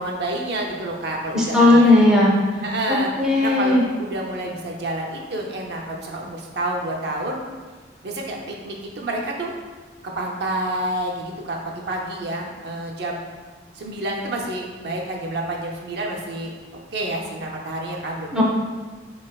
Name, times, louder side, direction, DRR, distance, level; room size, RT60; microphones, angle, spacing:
voice 1, 0.0-2.1 2.6-3.1 3.4-7.4 8.0-9.5 10.0-13.2 13.7-16.5 16.9-18.3, right 1 dB, 60° right, -1 dB, 0.5 m, -28 dB
voice 2, 1.3-2.4 2.9-3.8 18.3-18.4, left 2 dB, 5° right, -5 dB, 0.5 m, -16 dB
4.0 x 3.1 x 2.2 m, 1.4 s
head